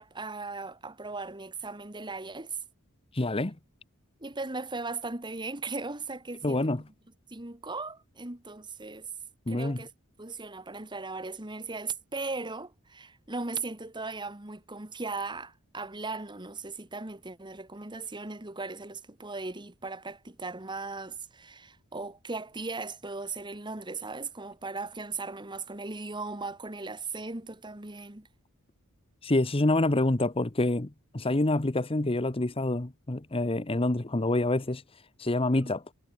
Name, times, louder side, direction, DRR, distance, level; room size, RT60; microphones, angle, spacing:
voice 1, 0.0-2.6 4.2-6.7 7.3-9.1 9.5-9.9 10.2-28.3 35.6-35.7, right 3 dB, 20° right, 1.8 m, -38 dB
voice 2, 3.1-3.5 6.4-6.8 9.5-9.8 29.2-34.8 35.2-35.8, left 2 dB, 25° left, 1.0 m, -27 dB
head